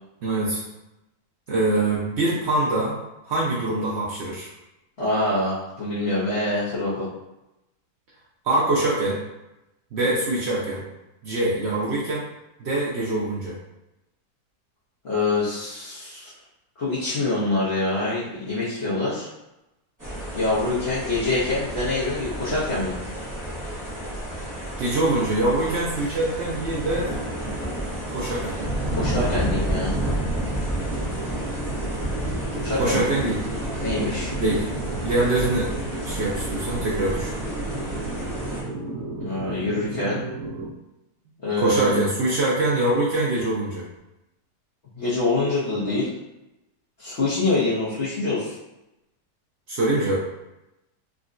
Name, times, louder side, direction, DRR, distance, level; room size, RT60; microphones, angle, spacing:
voice 1, 0.2-0.6 1.5-3.0 3.2-4.5 8.4-9.2 9.9-10.8 11.2-12.2 12.6-13.6 24.8-27.1 28.1-28.7 32.8-33.4 34.4-34.7 35.0-35.7 36.0-37.3 41.6-43.9 49.7-50.2, right 2 dB, 80° right, -5 dB, 0.5 m, -24 dB
voice 2, 5.0-7.1 15.0-16.3 16.8-19.3 20.3-23.0 28.9-29.9 32.6-33.0 33.8-34.3 39.1-40.3 41.4-42.0 44.9-46.1 47.0-48.5, left 2 dB, 50° left, -10 dB, 0.9 m, -25 dB
sound 1, 20.0-38.6, right 1 dB, 20° right, 0.5 m, -30 dB
sound 2, 30.8-40.7, right 2 dB, 60° right, 1.0 m, -33 dB
3.7 x 2.1 x 2.5 m, 0.93 s
omnidirectional pair, 1.8 m